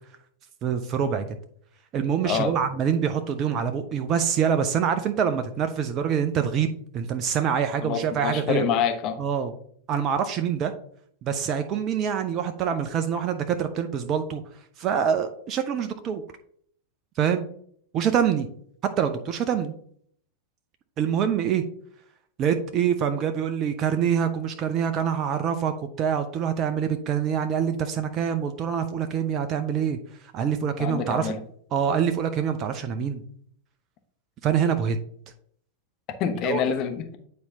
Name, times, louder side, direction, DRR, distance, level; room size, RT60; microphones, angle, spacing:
voice 1, 0.6-1.3 1.9-8.7 9.2-9.5 9.9-10.7 11.2-14.4 14.8-16.2 17.2-17.5 17.9-18.5 18.8-19.7 21.0-21.6 22.4-30.0 30.3-31.3 31.7-33.2 34.4-35.0 36.4-36.6, right 8 dB, 35° right, 7 dB, 0.5 m, -25 dB
voice 2, 2.2-2.6 7.8-9.2 30.6-31.4 36.2-37.2, left 7 dB, 35° left, 6 dB, 0.9 m, -27 dB
9.4 x 4.2 x 2.8 m, 0.63 s
figure-of-eight pair, 90°, 0 cm